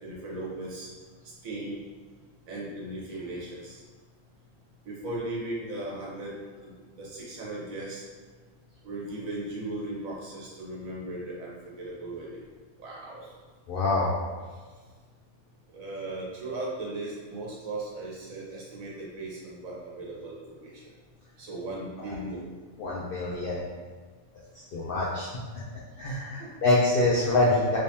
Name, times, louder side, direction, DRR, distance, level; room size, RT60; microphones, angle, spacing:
voice 1, 0.0-0.9 1.4-1.8 2.5-3.8 4.8-6.3 6.6-8.0 8.8-11.5 11.8-12.4 12.8-13.3 15.7-20.8 21.4-22.4 26.4-26.5, right 2 dB, 65° right, -5 dB, 1.3 m, -37 dB
voice 2, 13.7-14.2 22.1-22.2 22.8-23.6 24.7-25.3 26.0-27.8, left 2 dB, 70° left, -5 dB, 0.5 m, -25 dB
3.4 x 3.1 x 2.7 m, 1.5 s
omnidirectional pair, 1.6 m